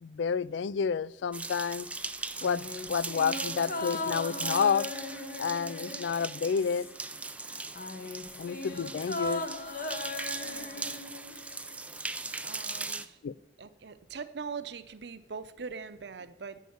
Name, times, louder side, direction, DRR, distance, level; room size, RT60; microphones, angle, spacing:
voice 1, 0.0-1.9 2.4-4.9 5.4-6.9 8.4-9.4 13.2-13.3, left 6 dB, 75° left, 0.3 m, -30 dB
sound 1, 1.3-13.1, right 3 dB, 5° right, 0.3 m, -39 dB
sound 2, 2.4-7.2 7.4-11.8 12.0-12.1, left 2 dB, 50° left, 0.9 m, -38 dB
voice 2, 7.9-8.3 10.4-10.9 12.4-13.2 13.6-16.6, right 5 dB, 70° right, 0.7 m, -42 dB
9.3 x 6.6 x 7.8 m
head